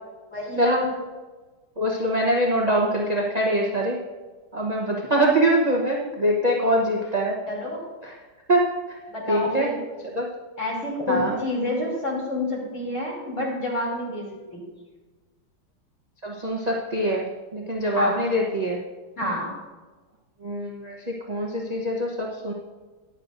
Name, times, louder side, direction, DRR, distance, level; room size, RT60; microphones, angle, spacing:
voice 1, 0.3-0.8 7.5-7.8 9.1-9.8 10.6-14.2 14.5-14.6 17.9-18.1 19.2-19.5, left 1 dB, 35° left, -4 dB, 3.3 m, -28 dB
voice 2, 1.8-4.0 4.5-7.3 8.5-8.7 9.3-9.7 10.2-10.3 11.1-11.3 16.2-17.2 17.5-18.8 20.4-20.9 21.3-22.5, right 1 dB, 35° right, -2 dB, 0.6 m, -23 dB
14.0 x 10.5 x 2.6 m, 1.3 s
omnidirectional pair, 2.4 m